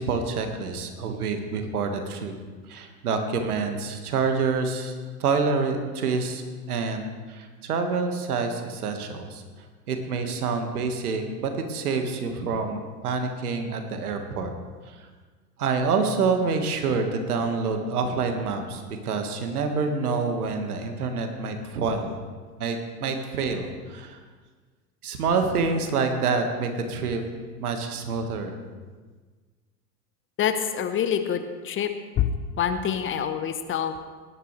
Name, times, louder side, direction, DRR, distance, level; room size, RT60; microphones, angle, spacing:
voice 1, 0.0-2.3 2.7-4.9 5.2-9.4 9.9-14.5 14.9-15.1 15.6-22.2 22.6-24.2 25.0-27.2 27.6-28.5, right 4 dB, 70° right, 5 dB, 1.8 m, -27 dB
voice 2, 30.4-31.9 32.2-32.3 32.6-33.9, left 9 dB, 25° left, 9 dB, 0.9 m, -26 dB
18.5 x 11.0 x 3.3 m, 1.4 s
figure-of-eight pair, 85°, 46 cm